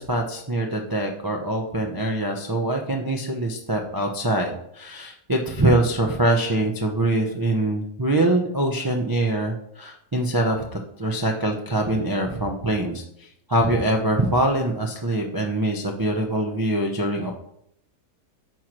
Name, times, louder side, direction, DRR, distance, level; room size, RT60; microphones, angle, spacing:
voice 1, 0.0-10.6 11.0-17.3, right 1 dB, 25° right, 0 dB, 0.4 m, -24 dB
9.1 x 3.1 x 6.0 m, 0.73 s
omnidirectional pair, 1.7 m